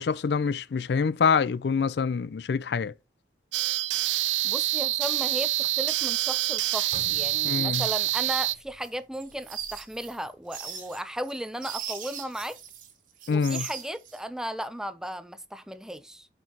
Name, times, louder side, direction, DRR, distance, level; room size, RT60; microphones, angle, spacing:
voice 1, 0.0-2.9 7.4-7.8 13.3-13.7, left 5 dB, 65° left, 0.4 m, -25 dB
sound 1, 3.5-8.5, right 16 dB, 85° right, 0.4 m, -26 dB
voice 2, 4.4-12.6 13.3-16.3, equal, 5° right, 0.4 m, -35 dB
sound 2, 6.9-10.9 11.3-11.6 12.2-12.5, equal, 30° left, 3.2 m, -51 dB
sound 3, 8.8-12.9 13.2-14.2, right 8 dB, 50° right, 1.6 m, -39 dB
12.0 x 4.5 x 2.8 m
head